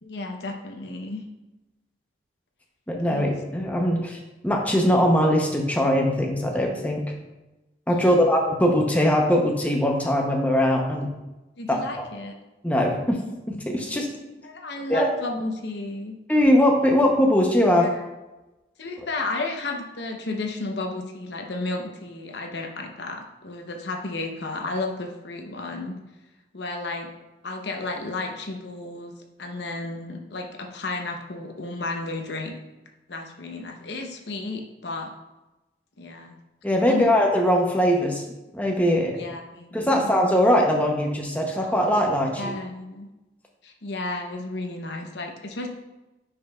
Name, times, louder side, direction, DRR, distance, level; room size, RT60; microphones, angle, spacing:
voice 1, 0.0-1.2 3.1-3.4 8.0-8.3 11.6-12.3 13.8-16.2 17.7-18.1 18.8-26.0 26.5-27.1 27.4-29.1 29.4-32.6 33.1-35.1 36.0-36.4 36.8-37.1 39.2-40.1 42.4-43.1 43.6-45.7, left 2 dB, 65° left, 3 dB, 0.8 m, -33 dB
voice 2, 2.9-4.2 4.4-7.0 7.9-11.1 11.7-11.8 12.6-13.2 13.5-14.1 14.9-15.1 16.3-17.9 36.6-38.2 38.5-39.2 39.7-42.6, equal, 10° left, 0 dB, 0.7 m, -21 dB
10.0 x 5.2 x 2.3 m, 1.0 s
head